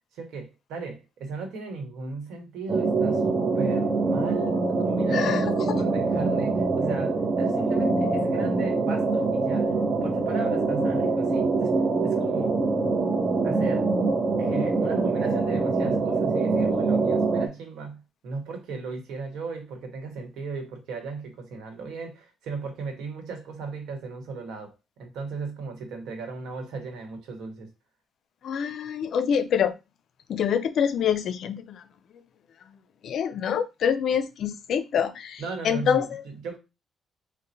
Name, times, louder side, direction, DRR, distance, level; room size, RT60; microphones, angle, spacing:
voice 1, 0.1-11.7 12.0-12.6 13.4-13.9 14.4-27.7 35.4-36.6, right 4 dB, 85° right, 1.0 m, -36 dB
sound 1, 2.7-17.5, right 3 dB, 40° right, 0.6 m, -24 dB
voice 2, 5.1-5.8 28.4-29.7 30.3-31.8 33.0-36.2, left 8 dB, 70° left, 0.4 m, -26 dB
4.2 x 2.1 x 2.6 m
cardioid pair, 90°, 0 cm